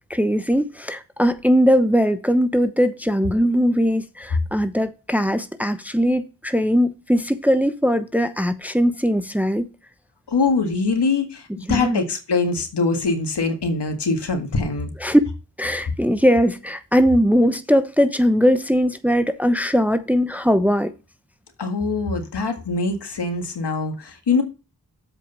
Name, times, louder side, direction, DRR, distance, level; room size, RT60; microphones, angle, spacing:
voice 1, 0.1-9.7 11.7-12.0 15.0-15.2 15.6-20.9, equal, 5° right, 0.8 m, -20 dB
voice 2, 10.3-14.9 21.6-24.4, left 4 dB, 75° left, 1.9 m, -23 dB
7.6 x 5.0 x 5.5 m
cardioid pair, 45°, 41 cm